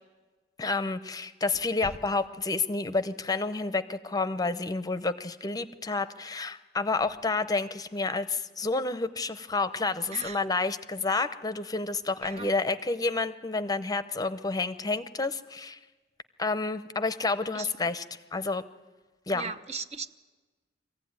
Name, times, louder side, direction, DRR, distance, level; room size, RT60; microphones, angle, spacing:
voice 1, 0.6-15.8 16.4-18.0 18.3-18.6 19.3-19.5, left 3 dB, 20° left, 12 dB, 0.7 m, -29 dB
voice 2, 10.1-10.5 12.2-12.5 17.5-17.7 19.3-20.1, right 4 dB, 35° right, 10 dB, 0.7 m, -38 dB
23.5 x 15.5 x 9.6 m, 1.3 s
head